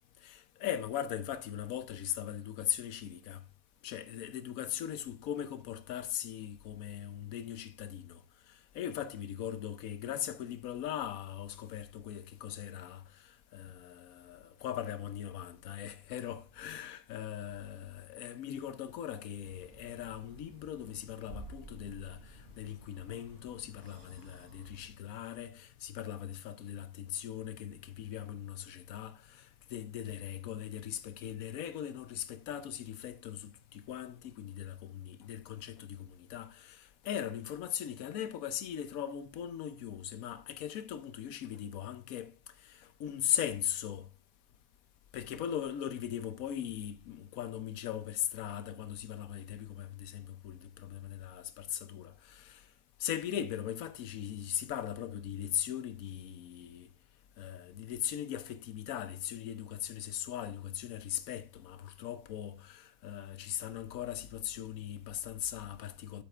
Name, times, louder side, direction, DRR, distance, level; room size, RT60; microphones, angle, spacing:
voice 1, 0.2-3.4 3.8-8.2 8.5-42.3 42.6-44.1 45.1-52.7 53.0-56.9 57.4-66.2, left 10 dB, 90° left, 1.1 m, -39 dB
sound 1, 19.4-24.9, right 2 dB, 60° right, 1.7 m, -53 dB
9.8 x 7.9 x 2.4 m
omnidirectional pair, 1.4 m